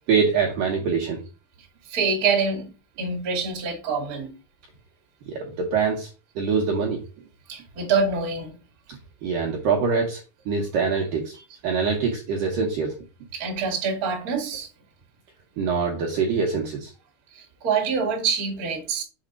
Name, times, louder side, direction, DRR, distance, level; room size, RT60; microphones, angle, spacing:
voice 1, 0.1-1.2 5.3-6.1 6.4-7.0 9.2-10.2 10.5-11.4 11.6-13.0 15.6-16.9, right 5 dB, 70° right, 2.2 m, -24 dB
voice 2, 1.9-2.7 3.0-4.3 7.5-8.5 13.3-14.7 17.3-19.0, right 5 dB, 35° right, 1.5 m, -25 dB
7.1 x 4.3 x 3.8 m
omnidirectional pair, 5.2 m